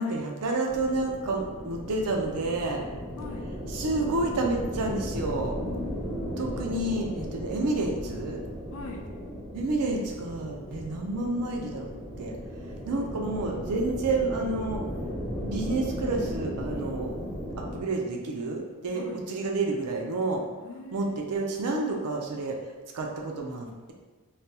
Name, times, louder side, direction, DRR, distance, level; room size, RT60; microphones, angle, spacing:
voice 1, 0.0-2.8 3.7-5.6 6.4-8.4 9.5-11.9 12.2-14.8 15.4-17.2 17.6-20.4 20.9-23.9, right 2 dB, 85° right, 1 dB, 0.5 m, -30 dB
sound 1, 0.7-17.8, equal, 5° left, 0.5 m, -36 dB
voice 2, 3.2-3.6 5.7-6.7 8.7-9.1 18.9-19.2 20.6-21.2, left 2 dB, 65° left, 3 dB, 0.4 m, -41 dB
3.2 x 2.2 x 2.8 m, 1.3 s
head